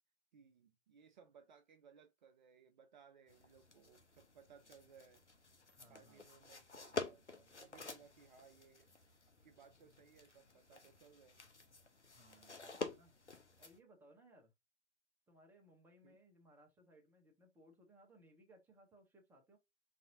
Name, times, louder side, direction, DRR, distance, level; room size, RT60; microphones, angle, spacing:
voice 1, 0.3-5.2 5.9-8.9 9.4-11.4 16.0-16.2, right 6 dB, 45° right, 0.5 m, -64 dB
sound 1, 3.3-13.8, left 3 dB, 90° left, 0.8 m, -49 dB
voice 2, 5.7-6.2 12.1-13.1 13.6-14.5 15.3-19.6, right 1 dB, 5° right, 0.8 m, -65 dB
4.1 x 2.7 x 2.6 m
figure-of-eight pair, 110°, 34 cm